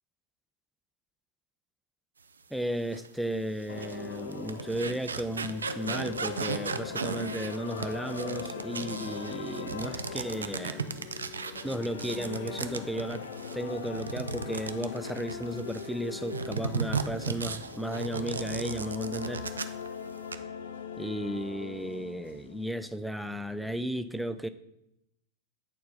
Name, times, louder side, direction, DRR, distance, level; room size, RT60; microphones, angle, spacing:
voice 1, 2.5-10.9 11.6-13.3 13.5-19.5 21.0-24.5, equal, ahead, 0.4 m, -34 dB
sound 1, 2.9-3.1 3.6-15.9 16.3-19.9 20.1-20.4, right 5 dB, 75° right, 0.4 m, -36 dB
sound 2, 3.7-22.6, left 6 dB, 60° left, 0.6 m, -40 dB
8.2 x 4.3 x 4.0 m
figure-of-eight pair, 90°, 0 cm